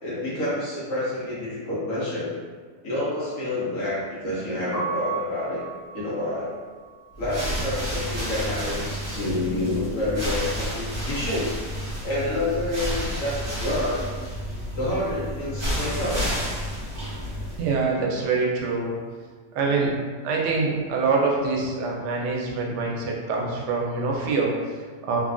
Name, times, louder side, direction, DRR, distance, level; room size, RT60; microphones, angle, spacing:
voice 1, 0.0-2.3 2.8-5.6 5.9-6.5 7.2-11.5 12.0-14.2 14.8-16.2 19.5-19.9, left 1 dB, 60° left, -8 dB, 1.1 m, -28 dB
Piano, 4.6-10.5 10.8-12.4 12.6-19.1, right 4 dB, 35° left, 0.9 m, -39 dB
sound 1, 7.1-17.8, equal, 25° right, 0.7 m, -30 dB
voice 2, 17.6-19.0 19.5-20.0 20.2-25.2, right 4 dB, 80° right, -1 dB, 1.1 m, -25 dB
3.2 x 2.2 x 2.4 m, 1.5 s
omnidirectional pair, 1.8 m